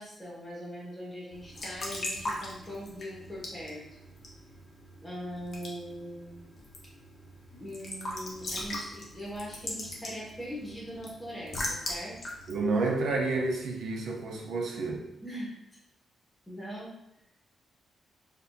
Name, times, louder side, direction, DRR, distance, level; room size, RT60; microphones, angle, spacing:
voice 1, 0.0-3.8 5.0-6.4 7.5-12.2 15.2-15.5 16.5-16.9, equal, 10° left, -6 dB, 1.5 m, -41 dB
Raindrop / Drip / Trickle dribble, 1.3-13.8, left 1 dB, 45° left, 0.9 m, -40 dB
voice 2, 12.5-15.1, right 3 dB, 75° right, 0 dB, 0.6 m, -30 dB
4.4 x 2.7 x 2.6 m, 0.88 s
cardioid pair, 125°, 0 cm